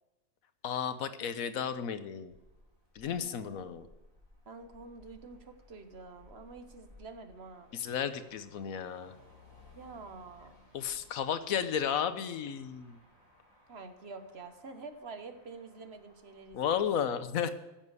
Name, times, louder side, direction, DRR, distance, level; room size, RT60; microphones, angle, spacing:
voice 1, 0.6-2.3 2.9-3.9 7.7-9.2 10.7-13.0 16.5-17.5, left 8 dB, 85° left, 11 dB, 1.2 m, -33 dB
Motor vehicle (road), 2.3-17.0, left 2 dB, 15° right, 3.7 m, -61 dB
voice 2, 3.1-3.7 4.5-7.7 9.7-10.6 13.7-17.2, right 4 dB, 50° right, 7 dB, 1.2 m, -48 dB
10.5 x 7.4 x 8.1 m, 1.0 s
omnidirectional pair, 1.4 m